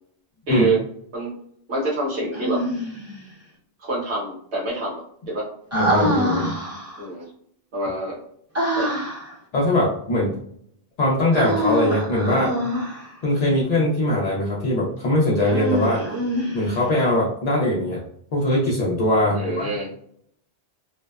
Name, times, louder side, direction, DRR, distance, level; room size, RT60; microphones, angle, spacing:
voice 1, 0.5-0.8 1.1-1.3 1.7-2.6 3.8-5.0 5.3-5.5 7.0-7.3 7.7-8.2 8.8-8.9 19.3-19.9, right 2 dB, 70° right, -4 dB, 1.2 m, -26 dB
Human voice, 2.3-3.2 5.7-7.1 8.5-9.3 11.3-13.1 15.4-17.0, equal, 20° right, 0.6 m, -25 dB
voice 2, 5.7-6.6 9.5-10.3 11.0-12.5 13.2-16.0 16.5-18.0 18.3-19.7, left 1 dB, 55° left, -5 dB, 0.5 m, -21 dB
2.6 x 2.1 x 2.2 m, 0.68 s
omnidirectional pair, 1.2 m